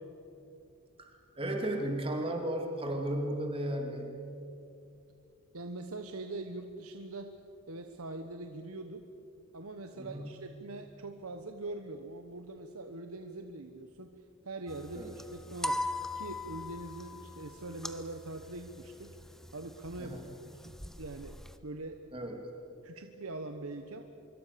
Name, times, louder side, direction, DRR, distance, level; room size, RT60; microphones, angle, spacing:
voice 1, 1.0-4.1 9.9-10.3 14.9-15.1 20.0-20.2 22.1-22.5, right 1 dB, 25° right, 2 dB, 2.9 m, -35 dB
voice 2, 5.5-7.3 7.7-9.0 9.5-14.1 14.4-15.9 16.1-19.2 19.5-21.4 21.6-22.0 22.8-24.0, right 2 dB, 80° right, 6 dB, 1.3 m, -42 dB
sound 1, 14.7-21.6, left 2 dB, ahead, 0.8 m, -41 dB
25.0 x 23.5 x 6.9 m, 2.7 s
head